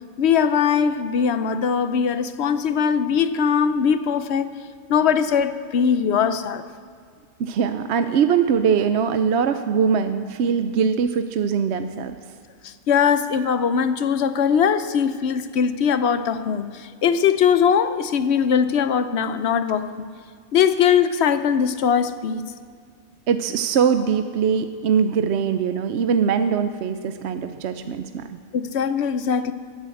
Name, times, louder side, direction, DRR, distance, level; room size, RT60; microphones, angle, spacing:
voice 1, 0.2-4.5 4.9-6.6 12.6-20.1 20.5-22.4 28.5-29.5, left 7 dB, 55° left, 12 dB, 0.8 m, -21 dB
voice 2, 7.4-12.2 23.3-28.4, right 6 dB, 60° right, 9 dB, 0.8 m, -22 dB
18.5 x 9.2 x 7.8 m, 2.1 s
omnidirectional pair, 1.5 m